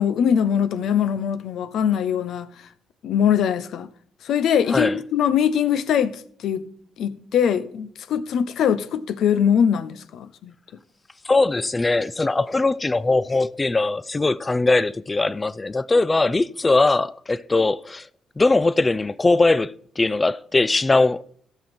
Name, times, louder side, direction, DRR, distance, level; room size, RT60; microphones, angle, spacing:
voice 1, 0.0-2.5 3.0-3.9 4.2-6.7 7.0-10.5, left 8 dB, 75° left, 0.7 m, -22 dB
voice 2, 11.2-18.1 18.4-21.3, left 3 dB, 20° left, 0.4 m, -20 dB
15.5 x 6.1 x 4.3 m
cardioid pair, 90°, 0 cm